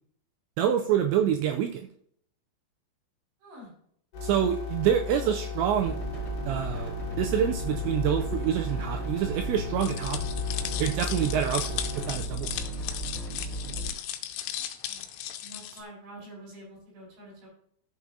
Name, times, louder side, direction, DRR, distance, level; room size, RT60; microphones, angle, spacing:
voice 1, 0.6-1.9 4.2-6.0 6.5-10.2 10.8-12.7, right 9 dB, 85° right, 5 dB, 2.6 m, -27 dB
voice 2, 3.4-3.7 14.6-15.1 15.4-17.5, right 1 dB, 60° right, -5 dB, 6.5 m, -47 dB
sound 1, 4.1-12.1, left 7 dB, 60° left, 4.0 m, -36 dB
sound 2, 5.8-13.9, right 1 dB, ahead, 3.2 m, -35 dB
sound 3, 9.8-15.8, left 11 dB, 90° left, 3.1 m, -36 dB
14.0 x 6.3 x 2.7 m, 0.67 s
omnidirectional pair, 5.6 m